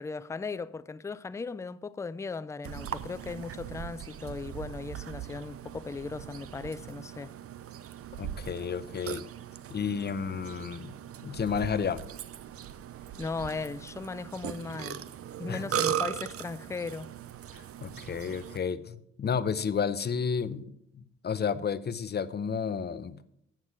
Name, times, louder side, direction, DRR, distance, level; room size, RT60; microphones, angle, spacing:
voice 1, 0.0-7.3 13.2-15.0 15.4-17.2, left 4 dB, 10° left, 0.3 m, -37 dB
Burping eructation, 2.6-18.6, right 10 dB, 50° right, 0.6 m, -39 dB
voice 2, 8.2-9.3 9.7-10.9 11.2-12.0 15.5-16.0 17.5-23.2, left 6 dB, 35° left, 0.7 m, -32 dB
8.0 x 7.5 x 6.0 m
cardioid pair, 90°, 30 cm